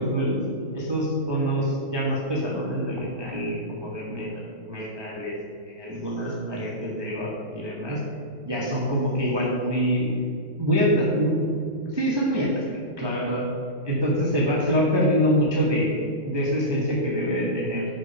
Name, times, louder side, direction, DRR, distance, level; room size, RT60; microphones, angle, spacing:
voice 1, 0.0-5.3 5.7-8.0 8.4-10.2 10.6-11.5 11.9-12.6 13.0-13.4 13.8-17.9, equal, 15° right, -4 dB, 1.0 m, -25 dB
7.8 x 5.1 x 5.5 m, 2.2 s
omnidirectional pair, 2.4 m